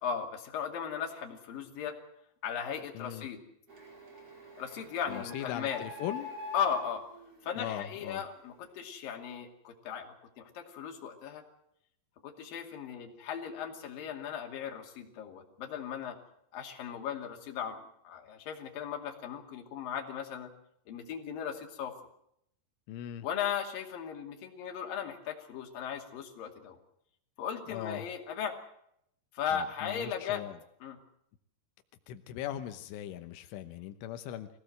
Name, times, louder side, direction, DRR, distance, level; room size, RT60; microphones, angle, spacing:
voice 1, 0.0-2.0 2.4-3.4 4.6-5.8 6.5-7.0 7.4-11.4 12.2-16.2 16.5-20.5 20.9-21.9 23.2-26.8 27.4-28.6 29.3-30.4 30.8-31.0, left 8 dB, 55° left, 3 dB, 3.9 m, -37 dB
voice 2, 3.0-3.3 5.1-6.3 7.6-8.2 22.9-23.3 27.7-28.1 29.5-30.6 32.1-34.5, left 11 dB, 90° left, 9 dB, 3.5 m, -39 dB
Printer, 3.7-8.3, left 2 dB, 30° right, 5.2 m, -45 dB
23.0 x 17.0 x 7.9 m, 0.74 s
omnidirectional pair, 5.4 m